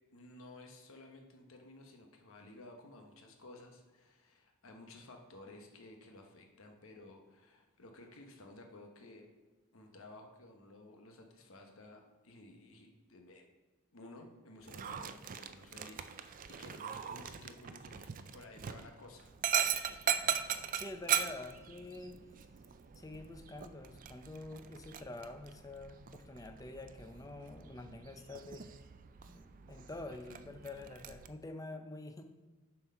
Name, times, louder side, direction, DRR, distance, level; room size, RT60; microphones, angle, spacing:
voice 1, 0.1-9.3 9.7-13.4 13.9-19.3, left 2 dB, 65° left, 3 dB, 1.1 m, -55 dB
Dog, 14.6-31.3, right 9 dB, 40° right, 0.3 m, -40 dB
voice 2, 20.7-22.2 23.0-28.7 29.3-32.3, left 2 dB, 15° left, 7 dB, 0.5 m, -47 dB
7.3 x 4.5 x 5.5 m, 1.2 s
head